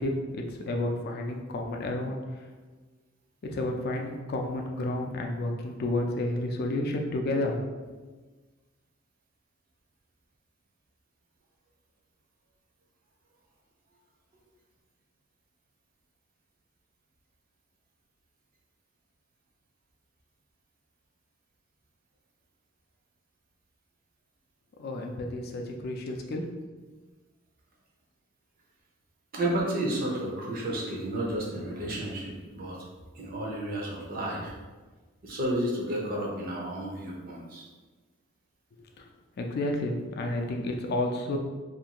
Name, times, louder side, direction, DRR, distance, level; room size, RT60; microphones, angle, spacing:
voice 1, 0.0-2.2 3.4-7.7 24.8-26.5 39.0-39.1 39.4-41.4, left 1 dB, 50° left, 2 dB, 0.4 m, -31 dB
voice 2, 29.3-32.8 33.1-34.5 35.2-37.6, right 1 dB, 45° right, -2 dB, 0.5 m, -31 dB
2.5 x 2.3 x 2.8 m, 1.3 s
head